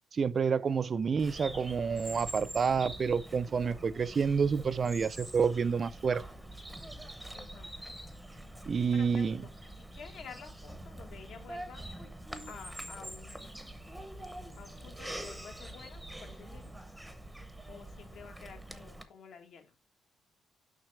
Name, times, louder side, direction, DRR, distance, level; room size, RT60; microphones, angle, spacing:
voice 1, 0.1-6.2 8.7-9.4, right 6 dB, 30° right, 0.3 m, -29 dB
Bird vocalization bird call bird song, 1.2-19.0, right 1 dB, ahead, 0.8 m, -45 dB
voice 2, 7.3-7.7 8.7-11.8 12.4-13.5 14.6-16.7 17.7-19.8, left 6 dB, 60° left, 1.6 m, -51 dB
7.2 x 5.8 x 3.3 m
cardioid pair, 175°, 0 cm